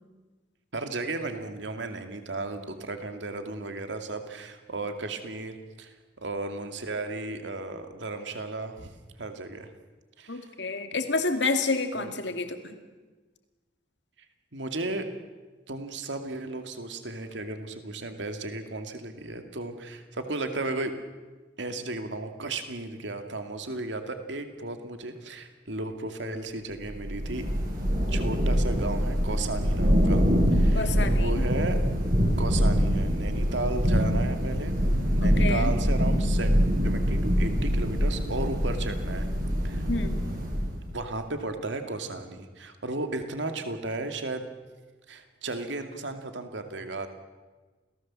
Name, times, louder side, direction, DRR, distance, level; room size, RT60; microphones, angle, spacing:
voice 1, 0.7-8.9 9.2-9.7 10.2-10.5 12.0-12.1 14.5-15.1 15.7-20.9 21.6-27.4 28.1-30.3 30.5-31.8 32.4-34.7 35.1-36.5 36.8-39.3 39.6-39.9 40.9-44.5 45.1-47.1, right 2 dB, 85° right, 7 dB, 2.3 m, -34 dB
voice 2, 10.3-12.8 30.7-31.4 35.2-35.7 39.9-40.2, left 3 dB, 75° left, 7 dB, 2.4 m, -29 dB
Thunder / Rain, 26.9-41.0, equal, 50° right, 7.5 m, -24 dB
28.5 x 18.0 x 7.5 m, 1.3 s
head